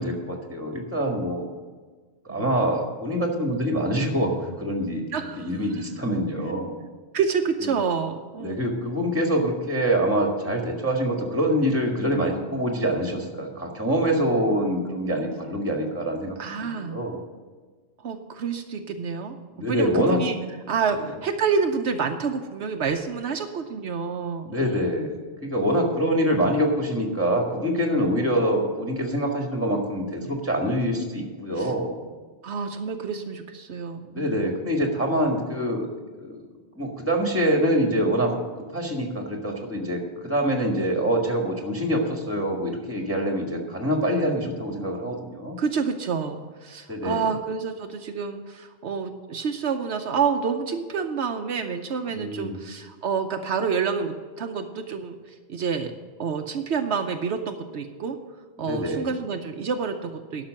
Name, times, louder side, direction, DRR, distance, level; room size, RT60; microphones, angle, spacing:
voice 1, 0.0-1.5 2.3-5.1 5.4-6.8 8.4-17.2 19.6-20.2 20.9-21.0 24.4-31.9 34.1-35.9 36.2-36.5 36.8-38.3 38.7-45.6 46.9-47.3 52.2-52.6 58.7-59.1, equal, 10° right, 1 dB, 1.8 m, -25 dB
voice 2, 5.1-5.5 7.1-8.6 16.4-17.0 18.0-19.4 19.7-20.4 20.7-24.8 31.6-31.7 32.4-34.5 45.6-55.9 56.2-58.2 58.6-60.5, right 6 dB, 75° right, 5 dB, 1.0 m, -28 dB
11.5 x 6.0 x 7.6 m, 1.4 s
omnidirectional pair, 1.2 m